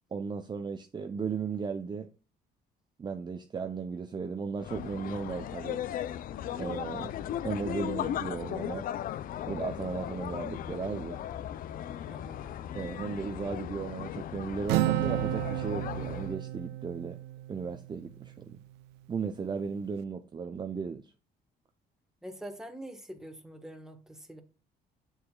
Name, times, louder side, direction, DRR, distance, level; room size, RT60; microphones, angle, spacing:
voice 1, 0.1-2.1 3.0-5.8 6.6-7.1 7.4-8.9 9.5-11.2 12.7-17.2 17.5-18.6 19.1-21.1, right 5 dB, 25° right, 0.7 m, -35 dB
sound 1, 4.6-16.4, left 10 dB, 55° left, 0.5 m, -37 dB
voice 2, 12.1-12.4 22.2-24.4, right 1 dB, 5° right, 1.4 m, -44 dB
Acoustic guitar, 14.7-18.3, right 17 dB, 90° right, 0.5 m, -32 dB
7.3 x 6.7 x 2.3 m
cardioid pair, 110°, 17 cm